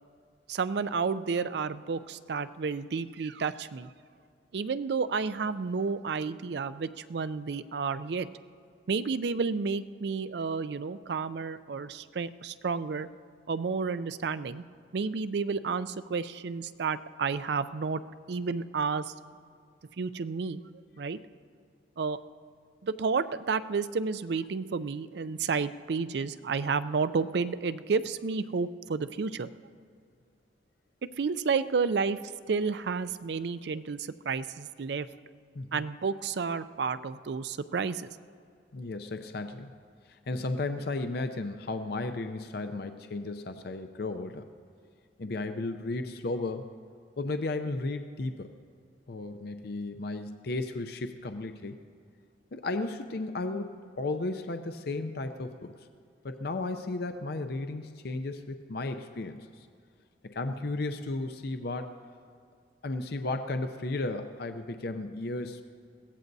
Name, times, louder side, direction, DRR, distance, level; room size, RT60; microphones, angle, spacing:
voice 1, 0.5-3.9 4.5-8.3 8.9-13.1 13.5-14.6 14.9-18.0 18.3-19.1 20.0-20.6 21.0-21.2 22.0-22.2 22.8-29.5 31.2-35.1 35.7-38.1, right 5 dB, 65° right, 14 dB, 0.4 m, -31 dB
voice 2, 38.7-39.7 40.1-44.5 45.2-46.7 47.2-48.5 49.1-51.8 52.5-55.7 56.2-59.7 60.2-62.0 62.8-65.6, left 2 dB, 60° left, 8 dB, 0.5 m, -34 dB
22.0 x 16.5 x 2.7 m, 2.2 s
head